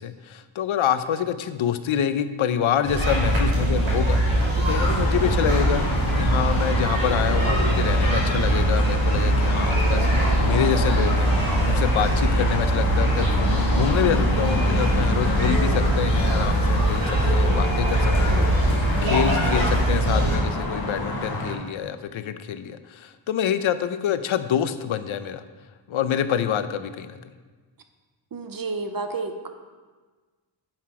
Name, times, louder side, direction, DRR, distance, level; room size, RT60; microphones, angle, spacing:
voice 1, 0.0-5.8 6.1-25.4 25.9-27.2, left 9 dB, 80° left, 11 dB, 0.7 m, -27 dB
sound 1, 2.8-20.4, right 1 dB, 70° right, 3.0 m, -21 dB
sound 2, 4.7-21.5, left 2 dB, 50° left, 1.3 m, -30 dB
voice 2, 28.3-29.5, right 3 dB, 45° right, 7 dB, 0.8 m, -30 dB
10.5 x 5.8 x 4.8 m, 1.4 s
wide cardioid pair, 170°, 47 cm